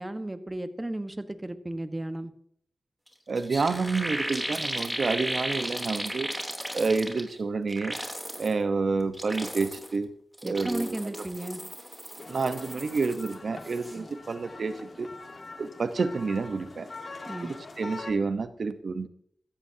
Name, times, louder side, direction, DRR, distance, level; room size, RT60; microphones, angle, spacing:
voice 1, 0.0-2.3 10.4-11.6 13.9-14.1 17.3-17.5, right 1 dB, 20° right, 10 dB, 1.3 m, -34 dB
sound 1, 3.1-3.2 3.4-7.4 7.7-8.5 9.0-10.0 10.3-13.3 13.6-14.0, equal, 5° right, 3.2 m, -35 dB
voice 2, 3.3-6.3 6.7-8.0 8.4-10.1 10.4-11.2 12.3-15.1 15.6-16.9 17.8-19.1, right 4 dB, 70° right, 11 dB, 1.0 m, -29 dB
sound 2, 12.2-18.1, left 3 dB, 55° left, 1.7 m, -43 dB
16.0 x 14.0 x 2.8 m, 0.66 s
cardioid pair, 55°, 0 cm